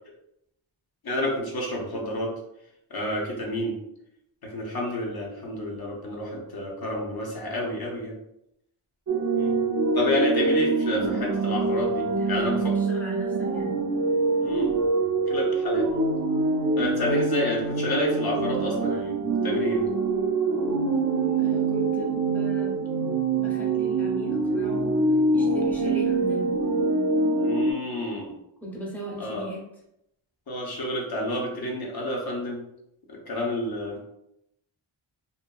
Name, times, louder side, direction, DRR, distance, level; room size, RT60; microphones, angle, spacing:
voice 1, 1.0-2.3 2.9-3.8 4.4-8.1 9.3-9.6 9.9-12.7 14.4-14.7 15.3-15.9 16.8-19.8 27.4-28.3 29.2-29.5 30.5-32.6 33.1-34.0, left 1 dB, 50° left, -2 dB, 0.8 m, -29 dB
sound 1, 9.1-27.7, right 3 dB, 40° right, 0.4 m, -25 dB
voice 2, 12.1-13.8 21.4-23.1 23.3-24.9 25.3-26.5 28.6-29.7, right 1 dB, 5° left, -3 dB, 0.7 m, -37 dB
2.6 x 2.6 x 2.3 m, 0.82 s
wide cardioid pair, 120°, 49 cm